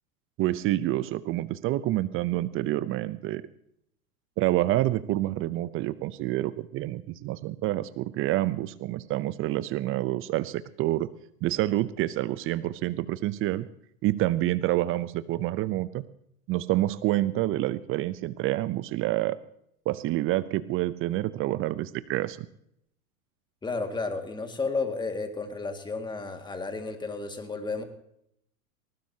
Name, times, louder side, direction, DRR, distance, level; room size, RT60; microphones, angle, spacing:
voice 1, 0.4-3.4 4.4-11.1 11.4-13.7 14.0-16.0 16.5-19.4 19.9-22.5, right 15 dB, 30° right, 16 dB, 0.6 m, -28 dB
voice 2, 23.6-27.8, left 3 dB, 10° left, 6 dB, 2.0 m, -32 dB
19.5 x 19.5 x 2.8 m, 0.73 s
hypercardioid pair, 105°, 44 cm